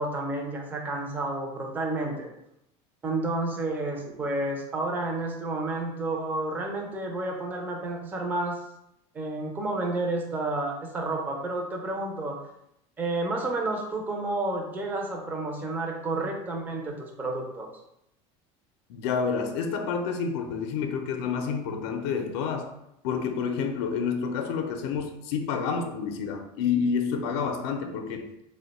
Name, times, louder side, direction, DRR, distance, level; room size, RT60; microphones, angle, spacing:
voice 1, 0.0-2.3 3.0-8.6 9.1-12.4 13.0-17.7, right 2 dB, 15° right, 1 dB, 0.4 m, -30 dB
voice 2, 18.9-22.7 23.0-28.3, left 6 dB, 75° left, 6 dB, 0.4 m, -29 dB
2.9 x 2.1 x 3.9 m, 0.81 s
cardioid pair, 170°, 14 cm